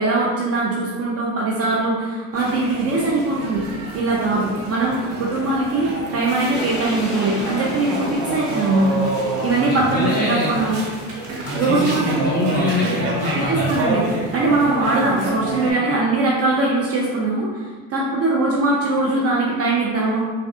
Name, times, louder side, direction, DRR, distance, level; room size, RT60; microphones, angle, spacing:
voice 1, 0.0-3.6 3.9-10.8 11.5-12.1 13.3-20.2, right 2 dB, 35° right, -4 dB, 0.5 m, -21 dB
sound 1, 2.3-15.7, right 2 dB, 80° right, 0.9 m, -28 dB
sound 2, 6.5-13.6, equal, ahead, 1.2 m, -36 dB
voice 2, 9.5-10.5 11.4-13.7, left 2 dB, 20° left, -6 dB, 1.3 m, -24 dB
3.2 x 2.3 x 2.6 m, 1.4 s
supercardioid pair, 90°, 42 cm